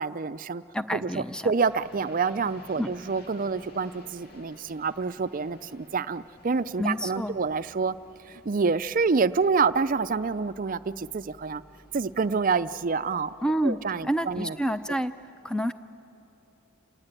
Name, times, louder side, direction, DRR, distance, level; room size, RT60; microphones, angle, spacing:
voice 1, 0.0-0.6 0.9-7.9 8.3-11.6 11.9-13.3 13.6-14.5, right 4 dB, 40° right, 14 dB, 0.5 m, -27 dB
voice 2, 0.7-1.5 2.8-2.9 6.8-7.4 13.4-13.8 14.0-15.1 15.4-15.7, equal, 5° left, 10 dB, 0.6 m, -28 dB
sound 1, 1.6-14.9, left 1 dB, 45° left, 2.6 m, -54 dB
27.5 x 18.5 x 9.0 m, 3.0 s
head